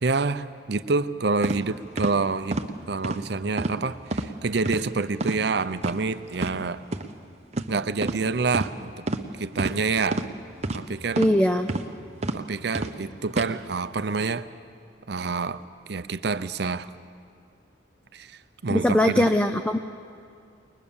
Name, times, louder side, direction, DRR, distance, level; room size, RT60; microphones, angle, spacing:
voice 1, 0.0-2.6 2.9-6.8 7.7-9.0 9.3-10.3 10.7-11.2 12.3-14.5 15.1-15.6 15.9-16.9 18.1-19.2, right 4 dB, 60° right, 12 dB, 0.6 m, -27 dB
sound 1, 1.4-1.6 2.0-2.1 2.5-2.7 3.0-3.2 3.6-3.8 4.1-4.3 4.6-4.8 5.2-5.4 5.8-5.9 6.3-6.5 6.9-7.0 7.5-7.7 8.0-8.2 8.5-8.7 9.1-9.2 9.6-9.7 10.1-10.3 10.6-10.8 11.1-11.3 11.7-11.9 12.2-12.4 12.7-12.9 13.3-13.5, right 2 dB, 35° right, 0.9 m, -28 dB
voice 2, 11.2-11.7 18.7-19.8, left 1 dB, 5° left, 7 dB, 0.5 m, -21 dB
22.5 x 20.5 x 7.1 m, 2.3 s
head